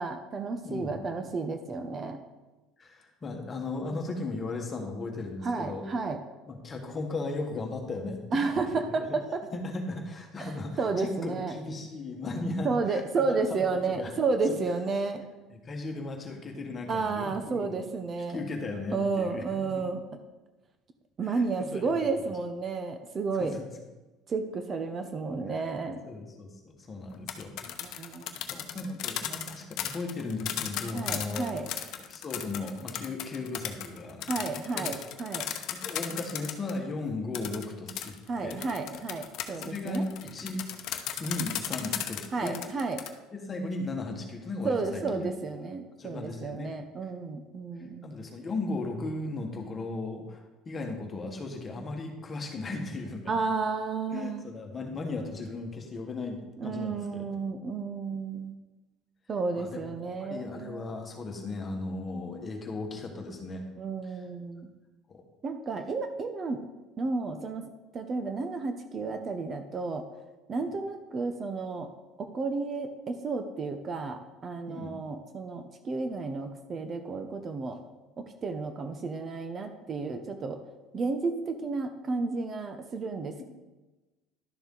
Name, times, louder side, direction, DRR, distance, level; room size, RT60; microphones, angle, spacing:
voice 1, 0.0-2.2 5.4-6.2 8.3-9.4 10.4-11.5 12.6-15.2 16.9-18.4 18.9-20.0 21.2-23.5 24.3-26.0 27.8-28.4 30.9-31.7 34.3-35.5 38.3-40.1 42.3-43.0 44.6-48.1 53.3-54.4 56.6-58.5 59.3-60.9 63.8-64.7 65.4-66.6 67.0-70.0 70.5-71.9 72.2-77.8 78.2-80.6 80.9-83.4, right 4 dB, 30° right, 7 dB, 0.7 m, -32 dB
voice 2, 0.6-1.0 2.8-5.9 6.5-8.6 9.5-14.1 14.5-14.6 15.5-17.7 18.3-19.9 21.2-21.4 21.7-22.1 23.4-23.7 25.5-25.6 26.0-27.5 27.9-28.1 28.5-31.5 32.1-34.2 34.7-35.0 35.7-38.2 38.4-38.6 39.5-40.7 41.2-42.6 43.3-45.3 46.0-46.7 48.0-53.4 54.1-57.3 59.6-59.8 60.2-63.6 64.0-64.2 65.1-65.2 70.6-70.7 74.7-75.0, left 2 dB, 25° left, 3 dB, 1.5 m, -36 dB
sound 1, 27.1-36.8 37.3-43.1, left 11 dB, 60° left, 0.9 m, -36 dB
11.5 x 6.8 x 3.9 m, 1.1 s
cardioid pair, 140°, 0 cm